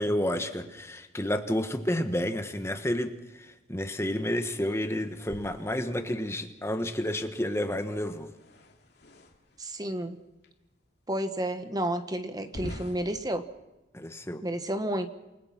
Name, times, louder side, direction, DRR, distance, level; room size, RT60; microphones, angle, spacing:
voice 1, 0.0-8.3 13.9-14.4, left 1 dB, 15° left, 7 dB, 1.4 m, -30 dB
sound 1, 5.1-6.4 8.2-9.7 10.4-10.5 11.2-11.3 12.4-13.2, equal, 60° left, 3.0 m, -45 dB
voice 2, 9.6-10.2 11.1-13.5 14.4-15.1, right 1 dB, 20° right, 9 dB, 1.2 m, -31 dB
28.5 x 19.5 x 6.0 m, 1.0 s
head